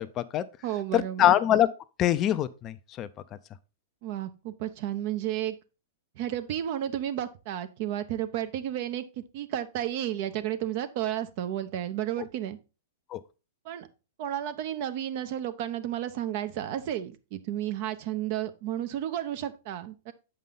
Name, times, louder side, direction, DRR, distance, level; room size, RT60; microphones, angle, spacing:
voice 1, 0.0-0.4 0.9-1.7 2.0-3.1 13.1-13.2, left 12 dB, 35° left, 0.5 m, -24 dB
voice 2, 0.6-1.3 4.0-5.6 6.2-9.0 9.3-12.6 13.6-13.9 14.2-20.1, right 11 dB, 50° right, 0.9 m, -32 dB
7.4 x 5.4 x 3.9 m
hypercardioid pair, 115°, 0 cm